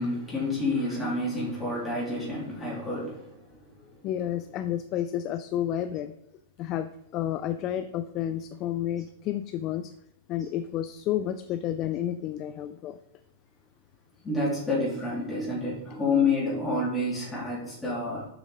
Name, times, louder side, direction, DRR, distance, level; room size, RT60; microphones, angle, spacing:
voice 1, 0.0-3.3 14.2-18.3, left 2 dB, 10° left, -7 dB, 3.3 m, -28 dB
voice 2, 4.0-6.1 6.6-9.9 10.3-13.0, left 11 dB, 30° left, 11 dB, 0.3 m, -31 dB
7.1 x 6.3 x 4.0 m, 0.82 s
supercardioid pair, 160°, 0 cm